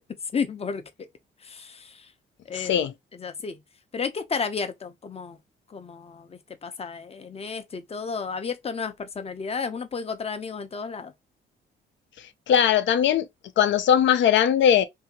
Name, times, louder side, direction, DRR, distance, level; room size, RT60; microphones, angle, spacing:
voice 1, 0.3-1.1 1.4-2.1 2.5-2.7 3.1-3.6 3.9-5.4 5.7-11.1, left 5 dB, 30° left, 0.7 m, -32 dB
voice 2, 2.5-2.9 12.5-13.3 13.6-14.8, left 9 dB, 70° left, 0.6 m, -19 dB
2.7 x 2.7 x 2.8 m
cardioid pair, 90°, 20 cm